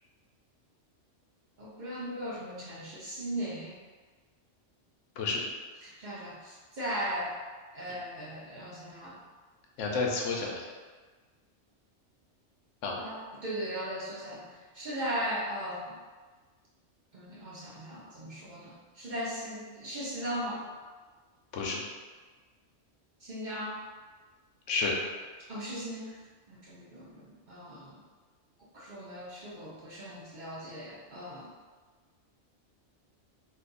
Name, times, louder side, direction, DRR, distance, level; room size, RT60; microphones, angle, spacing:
voice 1, 1.6-3.8 5.8-7.3 7.7-9.2 12.9-16.0 17.1-20.7 23.2-23.8 25.5-26.2 26.5-28.0 28.7-31.5, equal, 45° right, -6 dB, 0.7 m, -38 dB
voice 2, 9.8-10.7 12.8-13.0 21.5-21.8 24.7-25.0, left 4 dB, 80° left, -1 dB, 1.0 m, -30 dB
2.6 x 2.5 x 3.7 m, 1.4 s
omnidirectional pair, 1.2 m